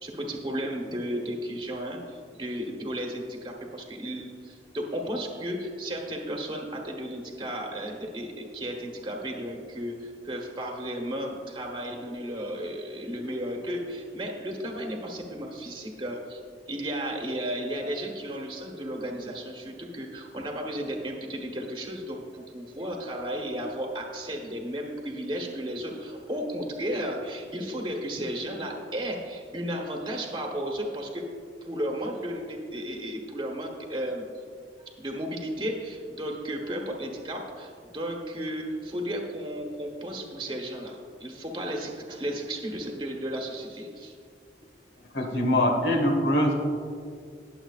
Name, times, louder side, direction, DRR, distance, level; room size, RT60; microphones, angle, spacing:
voice 1, 0.0-16.4 16.7-31.3 31.6-34.2 34.8-44.1, equal, 25° right, 1 dB, 1.1 m, -34 dB
voice 2, 45.1-46.5, left 1 dB, 90° left, 3 dB, 1.5 m, -23 dB
19.0 x 7.3 x 2.4 m, 2.2 s
head